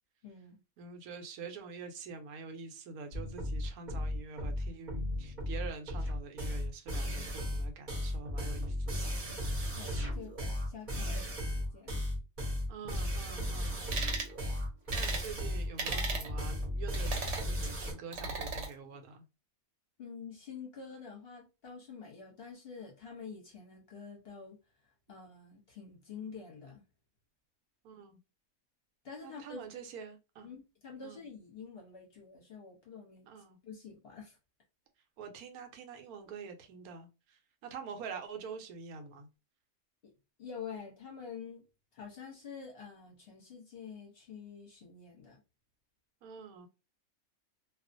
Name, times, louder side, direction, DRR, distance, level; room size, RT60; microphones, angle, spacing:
voice 1, 0.2-0.6 9.8-10.4 10.6-11.1 11.4-12.0 20.0-24.6 25.1-26.8 29.0-29.7 30.4-33.3 33.6-34.4 40.0-40.1 40.4-41.6 41.9-45.4, left 6 dB, 50° left, 0.8 m, -47 dB
voice 2, 0.8-9.2 10.9-11.3 12.7-13.8 14.9-19.2 27.8-28.2 29.2-30.5 31.0-31.2 33.3-33.6 35.2-39.3 46.2-46.7, right 5 dB, 85° right, 1.1 m, -46 dB
sound 1, 3.1-17.9, left 1 dB, 40° right, 0.8 m, -35 dB
sound 2, 13.9-14.3 14.9-15.3 15.8-16.3 16.9-17.5 18.1-18.7, right 4 dB, 60° right, 1.0 m, -36 dB
2.4 x 2.3 x 2.5 m
omnidirectional pair, 1.5 m